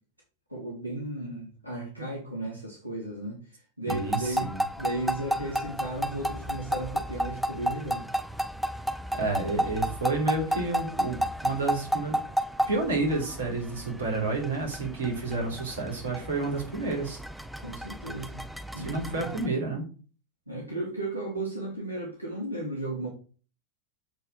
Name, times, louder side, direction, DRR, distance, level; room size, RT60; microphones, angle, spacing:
voice 1, 0.5-3.4 3.8-4.5 4.8-8.1 17.6-18.4 18.7-19.3 20.5-23.1, right 2 dB, 85° right, -2 dB, 2.4 m, -35 dB
sound 1, 3.9-19.5, equal, ahead, 0.6 m, -32 dB
voice 2, 3.9-4.6 9.2-12.2 12.7-17.2 18.8-19.8, right 3 dB, 65° right, 1 dB, 3.3 m, -30 dB
8.0 x 4.5 x 6.5 m, 0.38 s
figure-of-eight pair, 90°, 0 cm